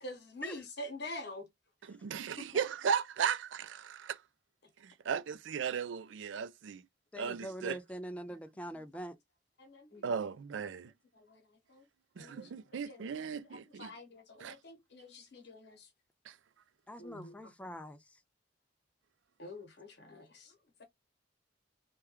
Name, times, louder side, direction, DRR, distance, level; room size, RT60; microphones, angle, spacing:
voice 1, 0.0-1.5 2.4-2.5 8.3-8.4 8.7-8.8 9.6-10.1 11.1-11.8 12.2-13.1 13.5-15.9 17.0-17.5 19.4-20.5, left 1 dB, 65° left, 1.0 m, -47 dB
voice 2, 1.9-4.2 4.8-6.8 7.2-7.8 10.0-10.9 12.2-13.9 14.4-14.6 16.3-16.4, right 7 dB, 80° right, 0.4 m, -36 dB
voice 3, 7.1-9.1 16.9-18.0, equal, 5° left, 0.4 m, -43 dB
3.4 x 2.3 x 2.9 m
head